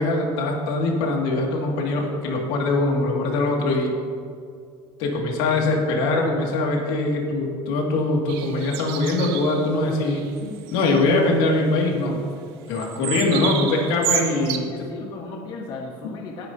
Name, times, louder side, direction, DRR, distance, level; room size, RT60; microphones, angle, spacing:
voice 1, 0.0-3.9 5.0-12.2 12.7-14.7, left 2 dB, 75° left, 0 dB, 2.2 m, -22 dB
sound 1, 8.3-9.7 10.1-10.3 10.6-11.2 12.7-14.6, right 10 dB, 85° right, 1.0 m, -30 dB
voice 2, 12.9-13.3 14.1-16.5, left 3 dB, 35° left, 0 dB, 1.0 m, -37 dB
18.0 x 9.7 x 2.8 m, 2.2 s
cardioid pair, 170°, 13 cm